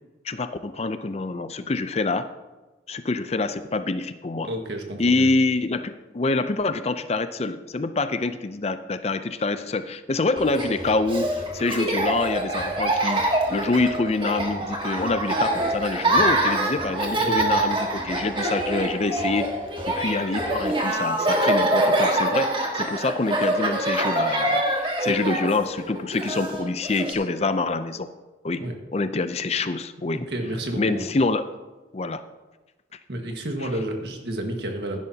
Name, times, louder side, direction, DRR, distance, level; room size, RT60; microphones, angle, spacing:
voice 1, 0.2-2.3 2.9-4.5 5.0-19.5 19.9-28.1 28.4-30.3 30.8-31.4 31.9-32.2, left 3 dB, 35° left, 11 dB, 0.5 m, -26 dB
voice 2, 4.4-5.3 17.2-17.6 28.6-28.8 30.3-31.0 33.1-35.0, right 1 dB, 70° right, 3 dB, 1.7 m, -30 dB
Laughter, 10.4-27.1, right 1 dB, 30° right, 1.7 m, -25 dB
16.0 x 11.0 x 2.8 m, 1.2 s
head